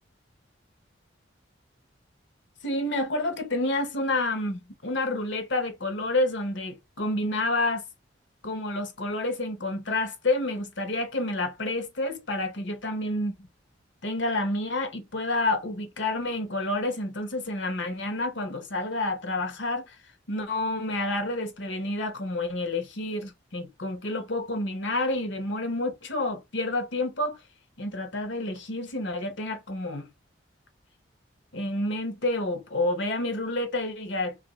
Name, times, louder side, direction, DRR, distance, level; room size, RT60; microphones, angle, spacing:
voice 1, 2.6-7.8 8.4-13.5 14.0-20.0 20.3-27.4 27.8-30.1 31.5-34.4, left 2 dB, 65° left, 0.9 m, -29 dB
3.2 x 2.5 x 3.0 m
head